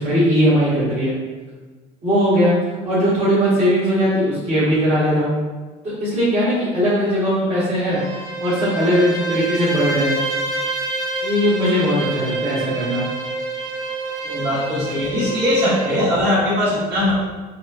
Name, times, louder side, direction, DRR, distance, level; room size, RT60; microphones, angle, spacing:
voice 1, 0.0-1.1 2.0-2.5 2.8-5.3 5.8-8.0 8.4-10.2 11.2-13.0, equal, 35° right, -11 dB, 1.4 m, -19 dB
Bowed string instrument, 7.7-16.1, right 2 dB, 85° right, 0.9 m, -27 dB
voice 2, 14.2-17.2, left 1 dB, 55° right, -6 dB, 1.4 m, -20 dB
4.2 x 2.2 x 2.6 m, 1.3 s
supercardioid pair, 75°, 20 cm